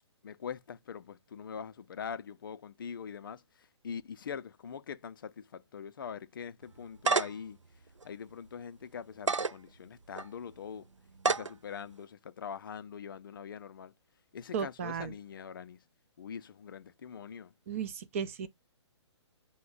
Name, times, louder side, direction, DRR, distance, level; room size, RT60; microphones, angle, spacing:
voice 1, 0.2-7.6 8.0-10.9 11.2-13.9 14.3-15.8 16.2-17.5, left 7 dB, 45° left, 0.5 m, -43 dB
sound 1, 6.7-7.5 8.0-8.1 9.1-9.5 10.2-10.3 11.2-11.5, right 4 dB, 85° right, 0.4 m, -28 dB
voice 2, 14.5-15.1 17.7-18.5, right 7 dB, 30° right, 0.5 m, -35 dB
5.8 x 2.2 x 3.6 m
figure-of-eight pair, 130°, 15 cm